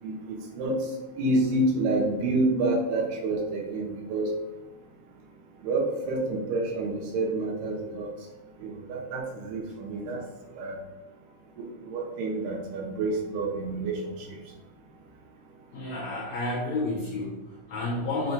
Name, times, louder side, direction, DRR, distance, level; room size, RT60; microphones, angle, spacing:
voice 1, 0.0-0.8 1.2-4.3 5.6-8.1 8.6-10.2 10.5-10.8 11.6-14.4, right 2 dB, 80° right, -1 dB, 3.3 m, -28 dB
voice 2, 15.7-18.3, left 2 dB, 60° left, -4 dB, 2.0 m, -31 dB
7.8 x 3.2 x 5.2 m, 1.1 s
omnidirectional pair, 4.6 m